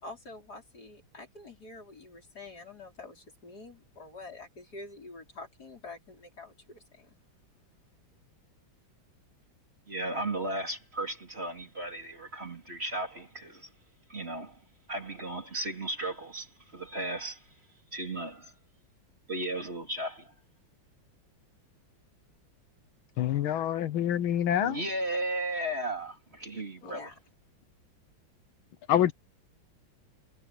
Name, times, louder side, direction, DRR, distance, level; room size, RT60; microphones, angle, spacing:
voice 1, 0.0-7.2 26.8-27.2, left 3 dB, 50° left, 5.7 m, -47 dB
voice 2, 9.9-13.7 14.1-14.6 14.9-17.4 17.9-18.5 19.3-20.3 24.6-27.0, right 1 dB, 30° right, 3.8 m, -35 dB
voice 3, 23.2-24.8 28.9-29.1, left 11 dB, 85° left, 1.8 m, -26 dB
omnidirectional pair, 2.2 m